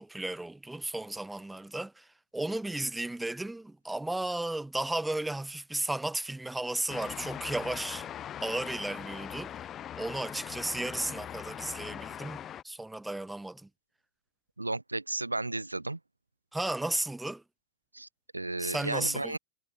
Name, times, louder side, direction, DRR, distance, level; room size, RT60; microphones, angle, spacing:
voice 1, 0.0-2.1 2.3-8.1 8.4-9.5 10.0-13.7 16.5-17.4 18.6-19.4, right 2 dB, 5° right, 5.5 m, -34 dB
sound 1, 6.9-12.6, left 10 dB, 25° left, 3.7 m, -41 dB
voice 2, 14.6-16.0 17.9-19.4, right 2 dB, 85° right, 5.1 m, -34 dB
figure-of-eight pair, 95°, 0 cm